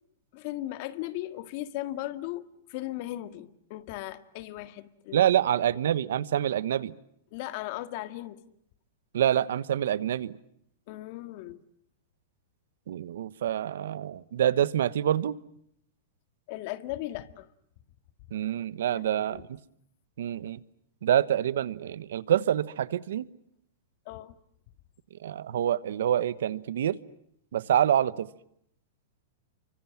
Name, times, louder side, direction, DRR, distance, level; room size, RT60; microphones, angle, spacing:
voice 1, 0.3-5.2 7.3-8.4 10.9-11.6 16.5-17.5 18.9-19.4 24.1-24.3, left 15 dB, 50° left, 11 dB, 1.9 m, -37 dB
voice 2, 5.1-6.9 9.1-10.3 12.9-15.3 18.3-19.4 20.2-20.6 21.0-23.3 25.2-27.0 27.5-28.3, right 10 dB, 75° right, 17 dB, 1.1 m, -26 dB
29.5 x 25.0 x 7.4 m, 0.71 s
hypercardioid pair, 135°, 0 cm